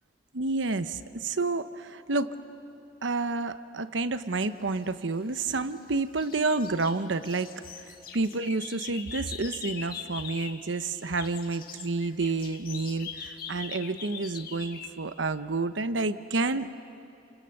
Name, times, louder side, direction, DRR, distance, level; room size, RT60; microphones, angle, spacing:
voice 1, 0.3-2.3 3.0-7.9 8.1-16.7, right 3 dB, 75° right, 11 dB, 0.9 m, -29 dB
sound 1, 5.0-5.8 6.2-10.7 10.9-14.9, left 7 dB, 50° left, 1.5 m, -42 dB
30.0 x 28.0 x 6.7 m, 2.7 s
head